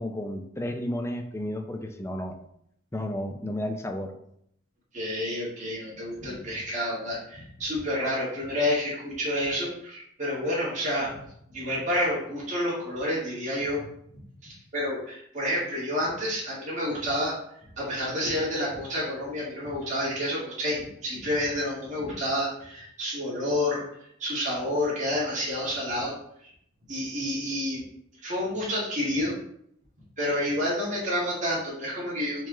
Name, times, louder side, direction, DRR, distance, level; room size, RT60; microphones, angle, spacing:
voice 1, 0.0-2.4 2.9-4.1, left 1 dB, 15° left, 5 dB, 0.4 m, -32 dB
voice 2, 4.9-11.1 11.5-13.8 14.1-17.3 17.8-26.1 26.4-26.5 26.9-27.8 28.2-29.3 30.2-32.5, left 1 dB, 40° right, -6 dB, 1.5 m, -29 dB
4.5 x 3.1 x 3.7 m, 0.71 s
head